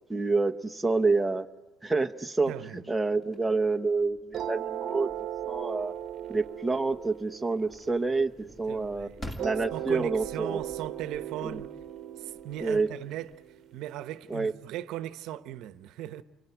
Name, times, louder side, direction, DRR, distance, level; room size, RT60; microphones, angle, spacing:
voice 1, 0.1-1.5 1.8-2.5 2.9-5.1 5.5-5.9 6.3-9.1 9.4-10.6 11.4-11.6 12.6-12.9 14.3-14.5, right 3 dB, 5° right, 0.8 m, -28 dB
voice 2, 2.5-2.9 8.7-9.2 9.7-11.7 12.2-13.3 13.7-16.2, right 12 dB, 65° right, 0.9 m, -38 dB
sound 1, 3.2-14.1, equal, 15° left, 2.3 m, -50 dB
sound 2, 4.3-8.7 9.4-14.3, right 11 dB, 45° right, 1.0 m, -38 dB
29.0 x 24.0 x 8.0 m
cardioid pair, 155°, 0 cm